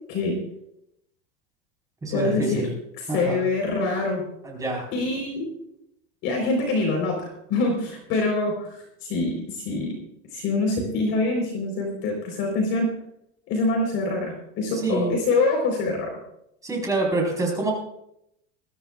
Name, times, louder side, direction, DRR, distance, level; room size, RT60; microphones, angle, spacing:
voice 1, 0.1-0.4 2.1-2.7 3.0-4.2 4.9-5.5 6.2-9.9 10.3-12.9 13.5-16.1, left 3 dB, 35° left, 1 dB, 4.1 m, -25 dB
voice 2, 2.0-2.7 3.1-3.4 4.4-4.9 14.8-15.2 16.6-17.7, right 2 dB, 10° right, -1 dB, 4.5 m, -26 dB
22.0 x 14.5 x 2.4 m, 0.75 s
supercardioid pair, 170°, 35 cm